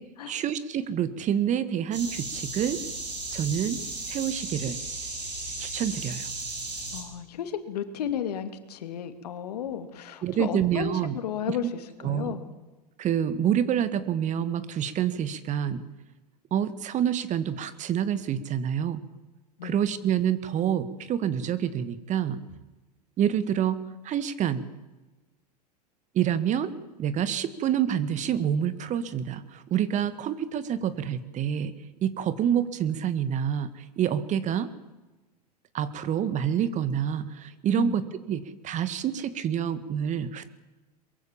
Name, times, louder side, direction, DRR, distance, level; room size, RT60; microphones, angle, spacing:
voice 1, 0.3-2.8 3.3-3.8 4.1-4.8 5.6-6.3 10.2-11.2 11.5-11.6 12.0-12.3 13.0-15.8 16.5-19.0 19.6-22.4 23.2-23.8 24.0-24.6 26.1-26.7 27.0-31.7 32.0-34.7 35.7-40.5, right 9 dB, 35° right, 14 dB, 1.8 m, -27 dB
sound 1, 1.9-7.0, right 2 dB, 85° right, 8.0 m, -35 dB
voice 2, 6.9-11.7 12.0-12.5 19.6-19.8 37.8-38.0, left 9 dB, 75° left, 9 dB, 2.5 m, -33 dB
23.0 x 22.5 x 7.3 m, 1.1 s
hypercardioid pair, 90°, 21 cm